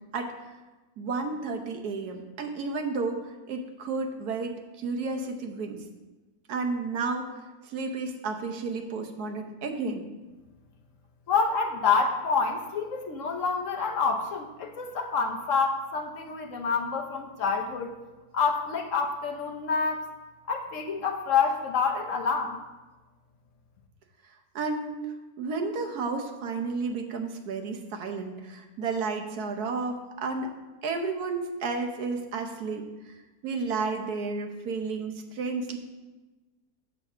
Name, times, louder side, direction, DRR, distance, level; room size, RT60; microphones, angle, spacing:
voice 1, 0.1-0.5 1.0-5.8 6.5-7.3 7.6-10.1 24.5-25.0 25.4-30.5 30.8-33.1 33.4-35.8, right 4 dB, 75° right, 4 dB, 1.4 m, -32 dB
voice 2, 11.3-18.0 18.3-20.1 20.5-22.6, left 5 dB, 60° left, 3 dB, 1.1 m, -27 dB
6.7 x 5.0 x 6.7 m, 1.2 s
omnidirectional pair, 1.7 m